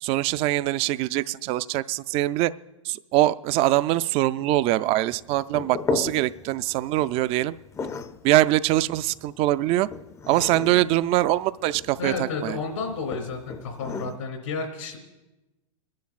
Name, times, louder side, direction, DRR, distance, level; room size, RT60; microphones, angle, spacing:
voice 1, 0.0-2.5 2.8-7.6 8.2-9.9 10.3-12.6, right 15 dB, 35° right, 16 dB, 0.3 m, -23 dB
sound 1, 5.1-14.2, left 5 dB, 20° left, 0.5 m, -36 dB
voice 2, 12.0-15.0, left 4 dB, 75° left, 4 dB, 2.6 m, -31 dB
28.0 x 10.5 x 2.4 m, 1.0 s
hypercardioid pair, 110°, 17 cm